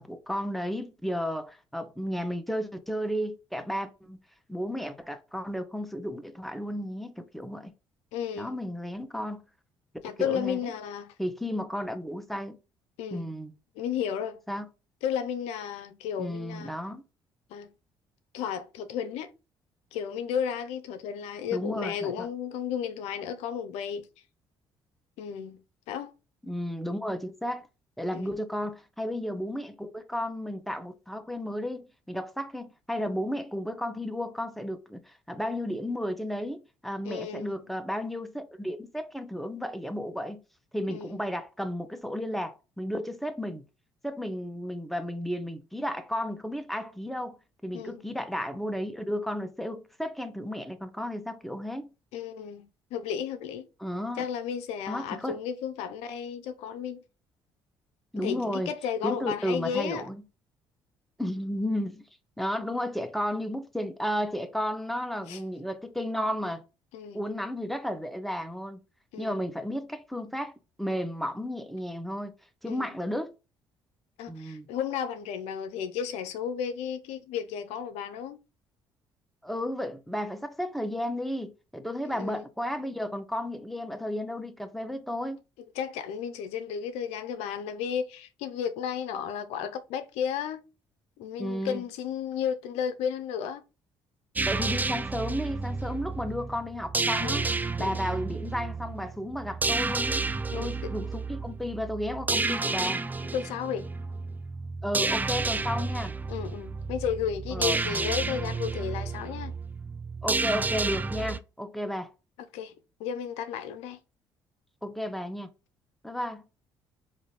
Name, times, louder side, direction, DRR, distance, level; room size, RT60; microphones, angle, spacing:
voice 1, 0.0-4.2 4.5-7.7 8.4-9.4 10.2-10.6 11.2-12.6 13.1-13.5 14.5-14.7 16.2-17.0 21.5-22.3 26.4-27.7 28.0-40.4 40.7-43.6 44.0-47.4 47.6-51.9 53.8-54.3 54.9-55.4 58.1-58.7 59.0-60.2 61.2-62.0 62.4-66.6 67.1-68.8 69.2-70.5 70.8-72.3 72.6-73.3 74.3-74.7 79.4-85.4 91.4-91.8 94.4-97.5 97.8-100.3 100.5-103.0 104.8-106.1 107.5-107.8 110.2-112.1 114.8-115.5 116.0-116.4, equal, ahead, 0.7 m, -33 dB
voice 2, 8.1-8.6 10.0-11.1 13.0-13.3 13.8-14.4 15.0-16.7 17.5-17.7 18.3-19.3 19.9-24.1 25.2-25.6 25.9-26.1 28.1-28.3 37.0-37.7 40.9-41.2 47.7-48.1 52.1-52.6 52.9-53.7 54.2-57.0 58.2-60.1 65.3-65.4 66.9-67.2 69.1-69.4 72.7-72.9 74.2-78.4 82.0-82.4 85.7-90.6 91.2-93.6 97.2-97.5 97.8-98.0 100.5-100.9 103.3-103.9 106.3-109.5 112.5-112.7 113.0-114.0, left 8 dB, 80° left, 0.5 m, -33 dB
sound 1, 94.4-111.4, right 3 dB, 15° right, 0.3 m, -31 dB
3.7 x 2.6 x 3.1 m
supercardioid pair, 60°, 11 cm